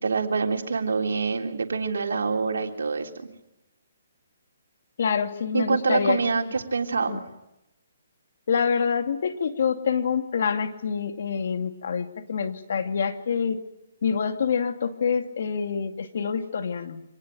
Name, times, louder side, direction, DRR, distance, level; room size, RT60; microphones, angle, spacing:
voice 1, 0.0-3.3 5.5-7.2, right 4 dB, 80° right, 3 dB, 3.4 m, -26 dB
voice 2, 5.0-6.2 7.1-7.2 8.5-13.6 14.0-17.0, left 6 dB, 65° left, 7 dB, 2.4 m, -26 dB
26.0 x 19.0 x 9.1 m, 0.92 s
hypercardioid pair, 150°, 0 cm